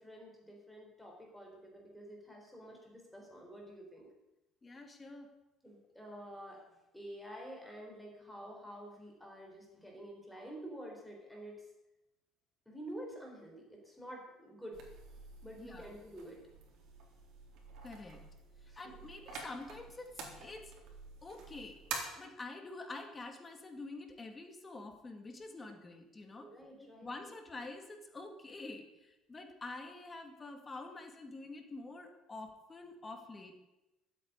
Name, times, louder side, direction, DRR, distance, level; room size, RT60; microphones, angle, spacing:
voice 1, 0.0-4.1 5.6-6.6 6.9-11.7 12.7-14.8 15.4-16.4 18.7-18.8 26.4-27.1, equal, ahead, 0 dB, 4.1 m, -49 dB
voice 2, 4.6-5.3 15.6-15.9 17.8-18.2 18.6-20.7 21.2-21.8 22.2-26.5 26.8-33.5, left 2 dB, 20° left, 4 dB, 2.1 m, -47 dB
sound 1, 14.7-22.0, right 5 dB, 60° right, 3.9 m, -48 dB
13.0 x 8.8 x 9.6 m, 0.97 s
cardioid pair, 140°, 0 cm